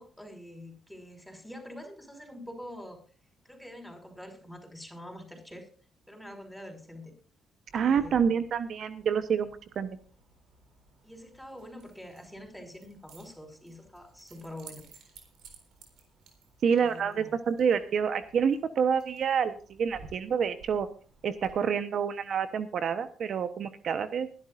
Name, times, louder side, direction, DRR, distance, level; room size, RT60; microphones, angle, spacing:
voice 1, 0.0-3.0 3.4-5.7 6.1-7.1 7.8-8.3 11.0-14.9 16.7-17.4, left 1 dB, ahead, 3 dB, 5.5 m, -45 dB
voice 2, 7.7-9.9 16.6-20.9 21.2-24.3, right 7 dB, 60° right, 11 dB, 1.0 m, -28 dB
Keys jangling, 7.7-21.5, right 4 dB, 80° right, 3.9 m, -56 dB
21.5 x 12.0 x 2.5 m, 0.41 s
cardioid pair, 90°, 0 cm